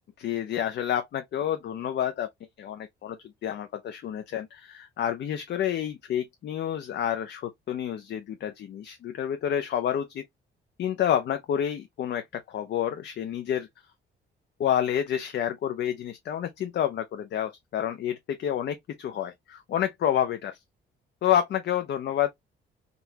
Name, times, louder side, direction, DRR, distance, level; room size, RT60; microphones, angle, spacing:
voice 1, 0.2-2.3 2.6-3.2 3.4-10.2 10.8-13.7 14.6-20.5 21.2-22.3, left 10 dB, 60° left, 0.5 m, -29 dB
3.9 x 2.3 x 2.6 m
cardioid pair, 90°, 20 cm